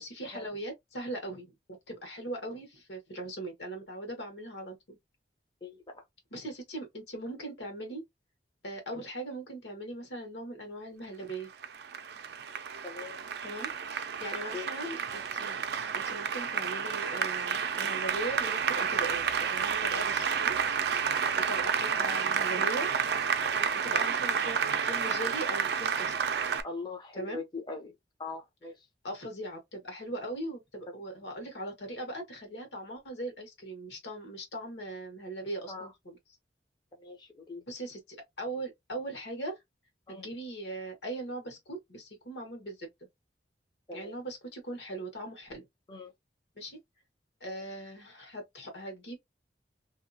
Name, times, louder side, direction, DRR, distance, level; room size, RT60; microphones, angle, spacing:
voice 1, 0.0-1.5 1.9-5.0 6.3-8.0 8.6-11.5 13.4-13.7 14.2-15.6 15.9-20.5 21.3-22.9 23.8-26.1 27.1-27.4 29.0-36.2 37.7-39.6 40.1-42.9 43.9-45.7 46.6-46.8 47.4-49.2, right 1 dB, 85° left, 1.3 m, -40 dB
voice 2, 5.6-6.0 12.8-13.2 14.5-14.7 23.4-23.7 26.6-27.9 28.2-28.7 35.7-35.9 37.0-37.6 40.1-40.2 43.9-44.1 45.9-46.1, left 4 dB, 25° left, 0.5 m, -41 dB
Applause, 11.3-26.6, right 7 dB, 65° right, 0.4 m, -30 dB
2.7 x 2.4 x 2.6 m
head